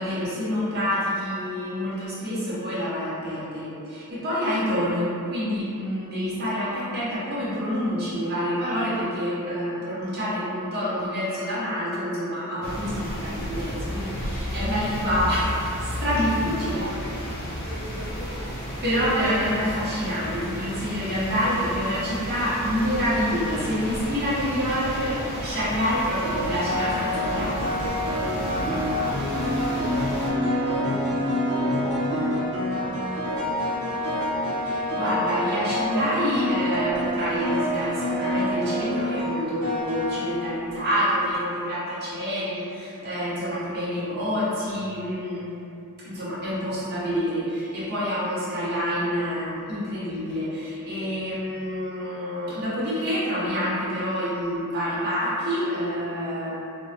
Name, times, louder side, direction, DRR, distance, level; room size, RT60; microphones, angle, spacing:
voice 1, 0.0-15.5 15.8-16.8 18.8-27.8 34.6-45.5 46.0-56.5, equal, 45° right, -9 dB, 0.8 m, -27 dB
sound 1, 12.6-30.3, equal, 45° left, 0.4 m, -33 dB
voice 2, 16.5-18.5 18.9-19.0 28.4-33.0 33.2-34.3, left 1 dB, 90° left, -10 dB, 1.0 m, -40 dB
sound 2, 24.9-25.0 26.2-41.1, equal, 85° right, 0.5 m, -27 dB
2.6 x 2.0 x 2.6 m, 2.7 s
head